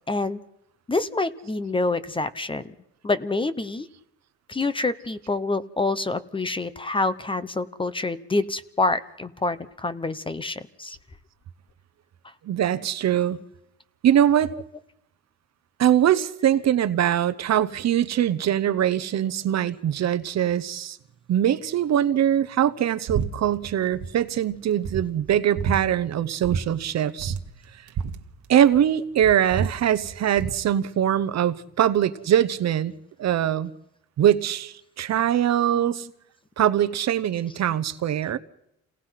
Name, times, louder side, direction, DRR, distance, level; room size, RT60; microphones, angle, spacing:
voice 1, 0.1-0.4 0.9-2.6 3.0-3.9 4.5-11.0 35.7-36.0, left 3 dB, 15° left, 0.9 m, -27 dB
voice 2, 12.4-13.4 14.0-14.6 15.8-21.0 21.3-27.3 28.5-32.9 33.2-33.7 34.2-36.1 36.6-38.4, right 10 dB, 60° right, 1.0 m, -22 dB
sound 1, 23.1-23.3 23.6-24.1 24.5-24.6 24.8-25.8 26.4-26.6 26.9-27.0 27.2-28.9 29.2-30.6, right 6 dB, 90° right, 1.5 m, -29 dB
28.5 x 18.0 x 5.9 m
cardioid pair, 140°, 29 cm